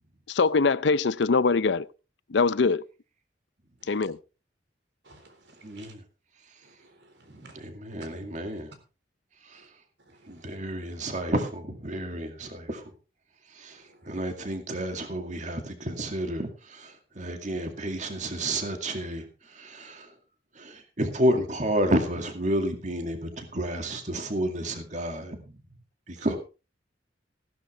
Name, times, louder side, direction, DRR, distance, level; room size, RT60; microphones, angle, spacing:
voice 1, 0.3-1.9 2.3-2.8 3.9-4.2, left 4 dB, 75° left, 0.5 m, -23 dB
voice 2, 5.0-5.9 6.6-7.1 7.4-7.6 8.0-8.1 13.7-14.0 26.2-26.3, right 3 dB, 75° right, 3.7 m, -53 dB
voice 3, 5.6-6.0 7.3-8.7 9.5-9.6 10.3-12.8 13.6-20.1 20.6-25.5 26.1-26.4, right 1 dB, 40° right, 2.2 m, -31 dB
15.5 x 12.0 x 3.4 m
head